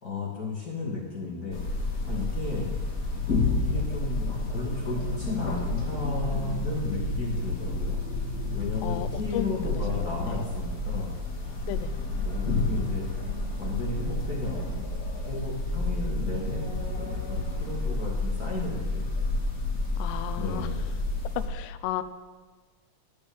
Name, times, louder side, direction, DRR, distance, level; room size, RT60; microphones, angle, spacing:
voice 1, 0.0-2.8 3.6-8.1 8.5-11.1 12.2-13.0 13.6-14.8 15.2-19.1 20.4-20.9, left 3 dB, 55° left, -4 dB, 1.0 m, -34 dB
sound 1, 1.5-21.5, left 2 dB, 40° left, 1.3 m, -30 dB
voice 2, 8.8-10.1 11.7-11.9 20.0-20.7 21.5-22.0, left 12 dB, 85° left, 12 dB, 2.6 m, -34 dB
11.0 x 6.7 x 7.8 m, 1.4 s
omnidirectional pair, 4.7 m